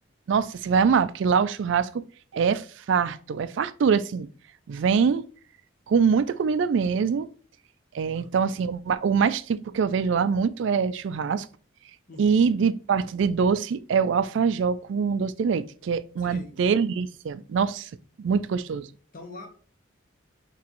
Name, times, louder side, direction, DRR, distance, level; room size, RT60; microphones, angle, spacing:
voice 1, 0.3-2.0 2.3-4.3 4.7-5.2 5.9-7.3 7.9-11.5 12.2-17.9 18.2-18.9, right 6 dB, 65° right, 0.3 m, -24 dB
voice 2, 8.1-8.6 12.1-12.6 16.2-16.6 19.1-19.5, left 2 dB, 40° left, 0.9 m, -44 dB
5.9 x 3.0 x 3.0 m
head